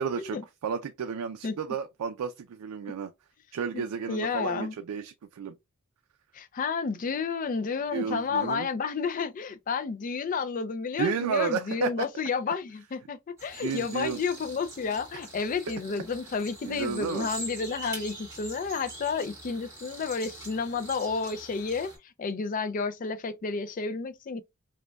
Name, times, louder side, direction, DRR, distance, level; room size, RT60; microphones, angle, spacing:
voice 1, 0.0-3.1 3.5-5.5 7.9-8.7 11.0-11.9 13.6-14.2 16.7-17.3, right 6 dB, 85° right, 0.4 m, -32 dB
voice 2, 3.7-4.8 6.3-24.4, left 5 dB, 35° left, 0.3 m, -31 dB
sound 1, 13.4-22.0, right 1 dB, 10° right, 1.7 m, -44 dB
5.0 x 2.2 x 2.2 m
head